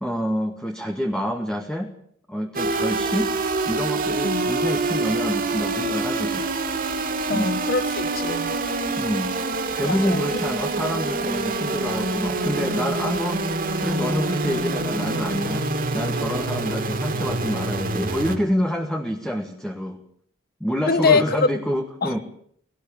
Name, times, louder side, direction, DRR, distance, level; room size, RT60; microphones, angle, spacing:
voice 1, 0.0-1.9 2.3-3.3 3.7-6.5 7.3-7.6 9.0-9.3 9.8-13.4 13.8-15.6 15.9-20.0 20.6-22.2, equal, 5° left, 4 dB, 1.6 m, -27 dB
sound 1, 2.5-18.4, right 3 dB, 50° right, 2.8 m, -26 dB
voice 2, 4.2-4.5 7.3-8.5 9.9-10.2 20.9-21.5 22.0-22.2, left 4 dB, 50° left, 14 dB, 1.2 m, -23 dB
19.5 x 17.5 x 8.7 m, 0.64 s
head